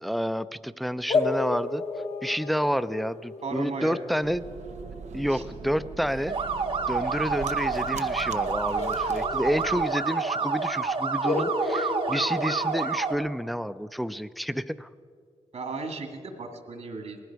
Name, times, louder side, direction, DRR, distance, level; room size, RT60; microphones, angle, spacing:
voice 1, 0.0-1.8 2.2-4.4 5.1-6.4 6.9-14.9, equal, ahead, 14 dB, 0.4 m, -29 dB
sound 1, 1.1-6.5 8.8-10.2 10.5-10.6 11.2-13.4, left 3 dB, 65° left, 1.3 m, -33 dB
voice 2, 3.4-4.0 5.3-5.4 15.5-17.2, right 3 dB, 75° right, 5 dB, 1.9 m, -35 dB
sound 2, 4.2-9.9, right 6 dB, 90° right, 0.5 m, -41 dB
sound 3, 6.3-13.1, right 4 dB, 50° right, 1.0 m, -28 dB
19.0 x 15.5 x 4.6 m, 2.3 s
cardioid pair, 75°, 12 cm